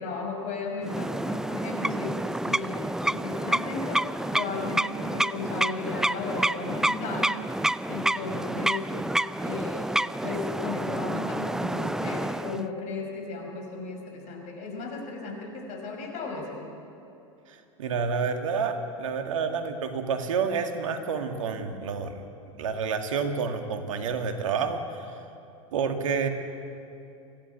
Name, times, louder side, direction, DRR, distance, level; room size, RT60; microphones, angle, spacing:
voice 1, 0.0-2.2 2.4-7.4 7.9-8.9 9.4-16.6, left 3 dB, 45° left, 3 dB, 5.4 m, -35 dB
sound 1, 0.8-12.7, right 1 dB, 5° right, 0.4 m, -29 dB
voice 2, 17.5-22.2 22.6-25.1 25.7-26.3, right 5 dB, 75° right, 6 dB, 2.1 m, -29 dB
24.0 x 16.0 x 8.3 m, 2.8 s
hypercardioid pair, 95°, 17 cm